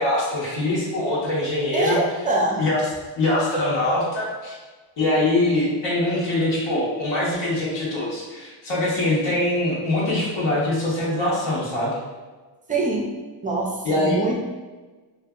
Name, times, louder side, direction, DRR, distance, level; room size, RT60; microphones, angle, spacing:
voice 1, 0.0-2.0 2.6-2.8 3.2-4.5 5.0-12.0 13.8-14.2, left 1 dB, 70° left, -7 dB, 1.0 m, -23 dB
voice 2, 1.7-2.6 12.7-13.1 13.4-14.4, right 2 dB, 20° right, -1 dB, 0.4 m, -24 dB
2.7 x 2.4 x 2.3 m, 1.3 s
cardioid pair, 110°, 45 cm